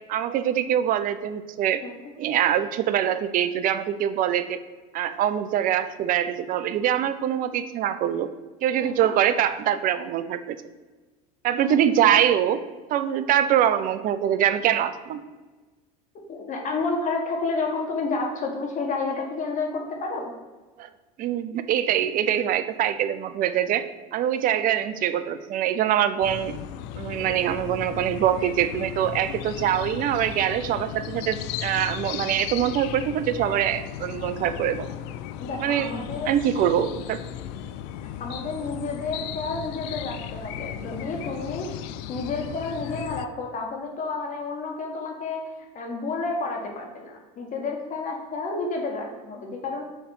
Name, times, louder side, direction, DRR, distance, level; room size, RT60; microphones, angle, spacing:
voice 1, 0.1-1.8 2.2-4.6 4.9-8.3 8.6-10.6 11.4-12.6 12.9-15.2 20.8-20.9 21.2-23.8 24.1-26.6 27.0-34.9 35.6-35.9 36.2-37.2, right 10 dB, 45° right, 12 dB, 0.5 m, -24 dB
voice 2, 16.3-20.3 35.4-36.3 38.2-41.7 42.1-45.4 45.7-49.8, left 3 dB, 40° left, 1 dB, 1.5 m, -30 dB
sound 1, 26.2-43.3, left 10 dB, 60° left, 0.4 m, -36 dB
6.4 x 3.2 x 4.6 m, 1.3 s
hypercardioid pair, 85°, 20 cm